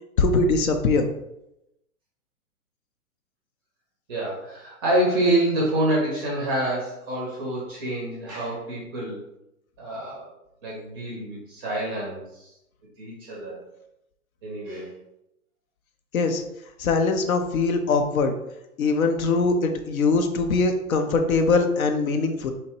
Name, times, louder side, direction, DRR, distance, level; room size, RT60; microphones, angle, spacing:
voice 1, 0.2-1.1 16.1-16.4 16.8-18.3 18.8-22.5, left 3 dB, 70° left, 6 dB, 0.5 m, -22 dB
voice 2, 4.1-9.2 9.8-10.3 10.6-12.5 13.0-13.6 14.4-15.0, right 1 dB, 20° right, -4 dB, 0.4 m, -27 dB
2.7 x 2.1 x 3.0 m, 0.86 s
figure-of-eight pair, 115°, 44 cm